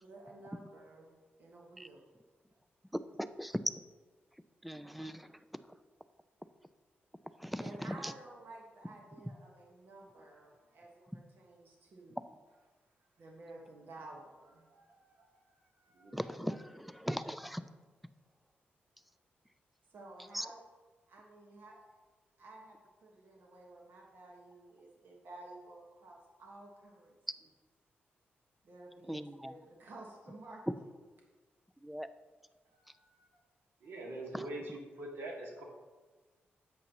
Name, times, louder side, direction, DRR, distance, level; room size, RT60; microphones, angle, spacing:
voice 1, 0.0-1.1 1.4-2.0 7.6-12.3 13.2-14.7 19.9-20.6 21.1-21.8 22.4-27.1 28.6-30.6, right 2 dB, 60° right, -2 dB, 1.5 m, -53 dB
voice 2, 3.2-3.6 4.6-5.4 7.4-8.1 16.1-17.6 20.3-20.5 29.1-29.6 31.8-32.1 34.3-34.5, equal, ahead, 12 dB, 0.3 m, -39 dB
voice 3, 14.7-15.3 15.9-16.4 33.8-35.6, right 1 dB, 85° right, -1 dB, 2.1 m, -44 dB
10.5 x 7.7 x 3.0 m, 1.3 s
wide cardioid pair, 155°, 4 cm